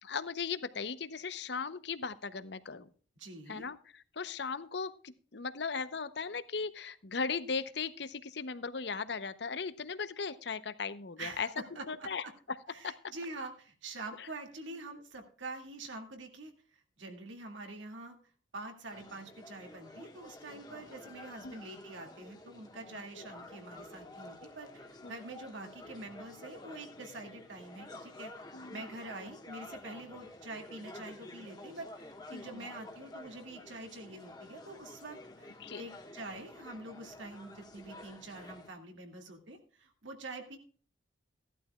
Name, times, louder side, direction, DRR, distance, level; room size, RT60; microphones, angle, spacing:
voice 1, 0.0-2.9 3.5-3.8 4.2-11.5 11.9-12.2 12.8-12.9 21.4-21.6 23.2-23.3 25.0-25.2 28.5-28.8 32.3-32.5 35.6-35.8, left 5 dB, 60° left, 14 dB, 0.7 m, -37 dB
voice 2, 3.2-3.7 11.2-12.3 12.7-18.2 18.5-28.3 28.7-40.6, right 2 dB, 80° right, 4 dB, 2.1 m, -46 dB
sound 1, 18.9-38.7, left 2 dB, 20° left, 1.3 m, -50 dB
17.0 x 12.0 x 2.3 m, 0.42 s
head